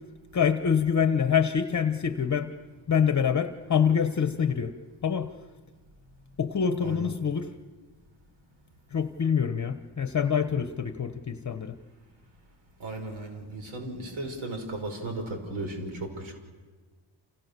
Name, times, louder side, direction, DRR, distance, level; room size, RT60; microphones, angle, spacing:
voice 1, 0.3-2.5 2.9-4.7 5.0-5.3 6.4-7.5 8.9-11.8, left 7 dB, 35° left, 9 dB, 1.0 m, -25 dB
voice 2, 12.8-16.3, right 2 dB, 75° right, 5 dB, 5.8 m, -35 dB
30.0 x 28.5 x 6.9 m, 1.4 s
wide cardioid pair, 140°, 48 cm